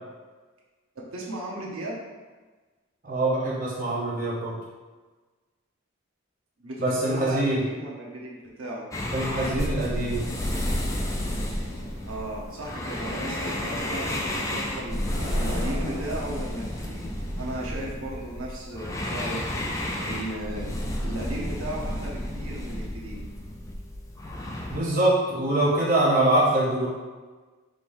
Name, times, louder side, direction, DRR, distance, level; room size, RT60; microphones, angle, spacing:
voice 1, 0.9-2.0 6.6-8.9 12.0-17.0 17.4-19.6 20.0-20.7 21.0-23.2, right 1 dB, 75° right, -4 dB, 0.9 m, -36 dB
voice 2, 3.0-4.6 6.8-7.6 9.1-10.2 24.7-26.9, right 1 dB, 40° right, -6 dB, 0.8 m, -24 dB
sound 1, 8.9-24.8, left 1 dB, 15° left, 0.4 m, -31 dB
sound 2, 11.0-16.0, equal, 60° left, 1.3 m, -39 dB
5.0 x 3.4 x 2.6 m, 1.3 s
head